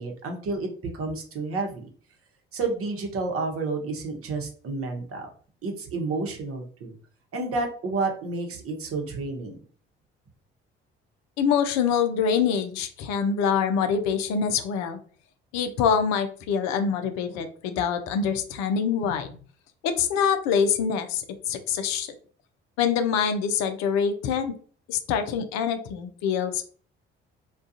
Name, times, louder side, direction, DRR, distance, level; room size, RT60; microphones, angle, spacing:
voice 1, 0.0-1.9 2.5-5.3 5.6-6.9 7.3-9.6, right 3 dB, 50° right, 3 dB, 0.8 m, -30 dB
voice 2, 11.4-15.0 15.5-19.3 19.8-22.1 22.8-24.5 24.9-26.6, left 7 dB, 65° left, 8 dB, 0.5 m, -25 dB
2.3 x 2.2 x 2.6 m, 0.43 s
hypercardioid pair, 50°, 30 cm